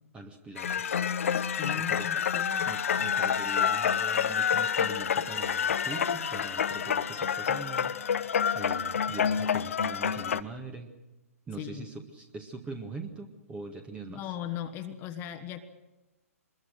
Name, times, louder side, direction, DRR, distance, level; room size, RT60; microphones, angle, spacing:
voice 1, 0.1-1.0 1.7-2.1 2.6-10.9 11.5-14.3, right 3 dB, 15° right, 5 dB, 1.7 m, -43 dB
sound 1, 0.6-10.4, left 7 dB, 60° left, 1.0 m, -28 dB
voice 2, 1.6-2.7 11.6-11.9 14.1-15.6, left 11 dB, 25° left, 7 dB, 1.4 m, -38 dB
24.5 x 21.5 x 6.6 m, 1.0 s
figure-of-eight pair, 125°, 8 cm